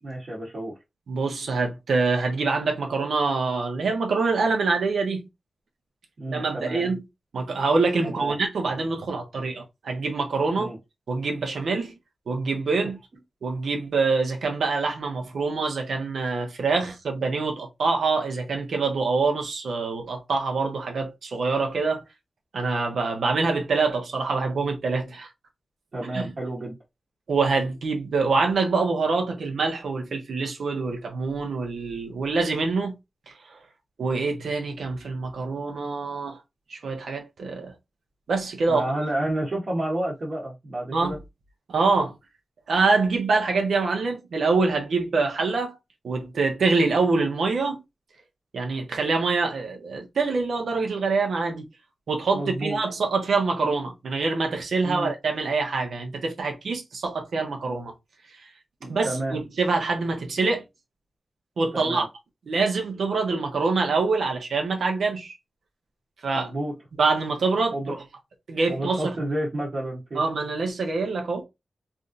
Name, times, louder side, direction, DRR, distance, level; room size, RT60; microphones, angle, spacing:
voice 1, 0.0-0.7 6.2-6.8 8.0-8.3 10.6-10.8 25.9-26.8 38.7-41.2 52.3-52.8 54.8-55.1 58.8-59.4 61.7-62.0 66.3-66.7 67.7-67.9 68.7-70.2, right 1 dB, 50° right, 1.1 m, -30 dB
voice 2, 1.1-5.2 6.3-7.0 7.3-10.7 11.1-11.9 12.3-13.0 13.4-22.0 22.5-25.3 26.1-26.3 27.3-32.9 33.4-33.6 34.0-36.4 36.7-37.7 38.3-38.9 40.9-41.2 41.7-42.1 42.7-45.8 46.0-47.8 48.5-51.7 52.1-57.9 58.3-58.4 58.9-60.6 61.6-62.1 62.5-65.4 66.2-66.5 67.0-68.0 68.5-69.2 70.1-71.4, right 4 dB, 85° right, 0.8 m, -25 dB
3.3 x 2.6 x 2.4 m
wide cardioid pair, 125°, 0 cm